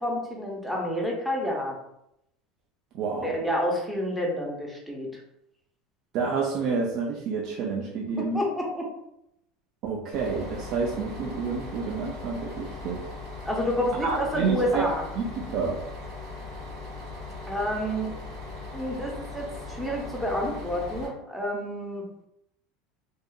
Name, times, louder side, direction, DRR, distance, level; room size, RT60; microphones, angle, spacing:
voice 1, 0.0-1.7 3.2-5.1 8.2-8.9 13.4-15.0 17.5-18.1 18.7-22.0, equal, ahead, -2 dB, 0.6 m, -29 dB
voice 2, 2.9-3.4 6.1-8.4 9.8-13.0 14.0-14.8 15.2-15.8, right 5 dB, 55° right, -2 dB, 0.4 m, -29 dB
Bus, 10.1-21.1, left 3 dB, 85° right, 1.3 m, -39 dB
2.7 x 2.3 x 2.2 m, 0.82 s
supercardioid pair, 135°, 0 cm